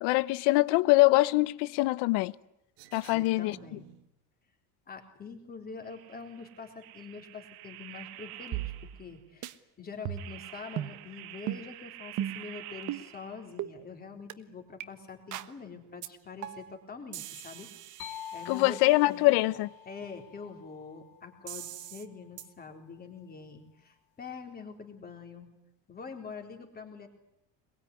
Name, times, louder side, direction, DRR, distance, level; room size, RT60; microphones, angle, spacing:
voice 1, 0.0-2.3 2.9-3.6 18.5-19.7, left 21 dB, 70° left, 1.0 m, -24 dB
sound 1, 2.8-4.1 5.8-9.2 10.2-13.6, right 15 dB, 80° right, 1.8 m, -48 dB
voice 2, 3.1-3.8 4.9-17.7 18.3-19.3 19.9-25.5 25.9-27.1, left 5 dB, 20° left, 3.9 m, -45 dB
sound 2, 8.5-9.1 9.4-9.5 10.0-10.4 10.8-11.0 11.5-11.6 12.2-12.5 12.9-13.0 13.6-13.7 14.3-14.4 14.8-14.9 15.3-15.5 16.0-16.1 16.4-16.7 17.1-19.0 21.5-22.0 22.4-22.5, right 12 dB, 45° right, 1.3 m, -38 dB
sound 3, 18.0-21.7, left 9 dB, 45° left, 2.1 m, -46 dB
23.0 x 22.5 x 9.8 m
cardioid pair, 165°, 42 cm